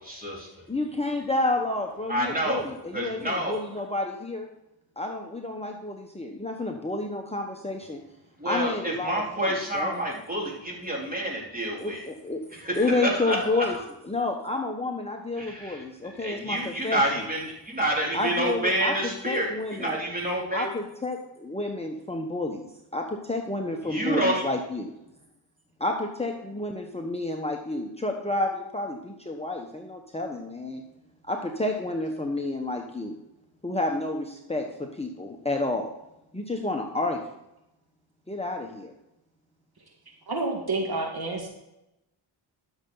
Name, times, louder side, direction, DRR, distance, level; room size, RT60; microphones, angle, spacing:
voice 1, 0.0-0.5 2.1-2.7 2.9-3.7 8.4-12.0 12.5-13.8 15.4-20.7 23.8-24.4, right 1 dB, 15° right, -2 dB, 3.9 m, -28 dB
voice 2, 0.7-4.5 5.0-8.0 8.4-9.9 11.8-12.4 12.7-13.8 14.0-17.2 18.1-18.9 19.2-19.9 20.5-24.9 25.8-30.8 31.3-33.1 33.6-35.9 36.3-37.2 38.3-38.9, left 2 dB, 10° left, 1 dB, 1.2 m, -30 dB
voice 3, 40.3-41.5, right 2 dB, 50° right, 1 dB, 2.0 m, -29 dB
13.0 x 6.8 x 4.0 m, 0.88 s
cardioid pair, 65°, 49 cm